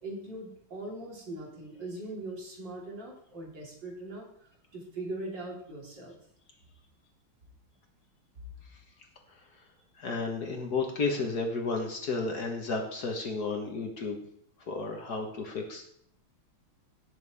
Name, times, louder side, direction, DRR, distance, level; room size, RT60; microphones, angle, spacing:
voice 1, 0.0-4.3 4.7-6.2, right 2 dB, 60° right, -2 dB, 3.5 m, -40 dB
voice 2, 10.0-14.2 14.7-15.8, left 3 dB, 50° left, 2 dB, 1.8 m, -32 dB
17.5 x 7.1 x 3.6 m, 0.67 s
omnidirectional pair, 2.2 m